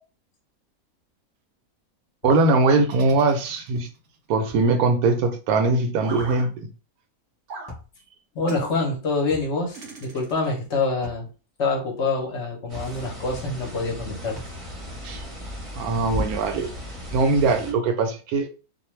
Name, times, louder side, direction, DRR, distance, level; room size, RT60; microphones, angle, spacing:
voice 1, 2.2-3.9 4.3-6.7 15.0-15.2 15.8-16.7 17.1-18.5, right 3 dB, 85° right, 1.1 m, -21 dB
sound 1, 2.9-4.1 6.0-6.5 7.5-7.7 8.5-8.7 9.7-10.6, right 3 dB, 65° right, 0.9 m, -40 dB
sound 2, 4.5-4.7 6.2-6.4 7.7-7.9 9.3-9.6 11.0-11.3 12.7-13.0 14.4-14.6 15.9-16.2, left 2 dB, 25° left, 0.6 m, -41 dB
voice 2, 8.3-11.3 11.6-14.4, left 3 dB, 60° left, 0.9 m, -26 dB
sound 3, 12.7-17.7, left 1 dB, 30° right, 0.7 m, -35 dB
2.5 x 2.2 x 3.1 m
omnidirectional pair, 1.5 m